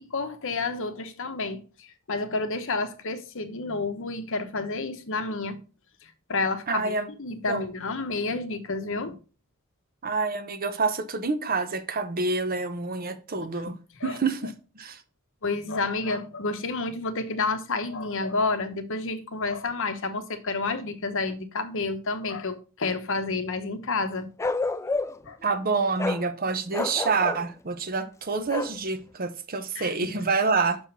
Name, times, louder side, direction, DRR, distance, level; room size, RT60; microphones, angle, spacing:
voice 1, 0.1-5.6 6.3-6.9 7.2-9.2 13.3-13.5 14.0-14.2 15.4-24.3 25.3-25.4 29.7-30.3, left 3 dB, 65° left, 1.0 m, -30 dB
voice 2, 6.7-7.1 7.5-7.6 10.0-13.7 14.0-15.0 25.4-30.8, right 4 dB, 45° right, 0.9 m, -27 dB
Bark, 24.4-25.3 26.0-26.2 26.7-27.5 28.5-28.8, left 3 dB, 15° left, 0.3 m, -29 dB
6.5 x 4.7 x 5.4 m
head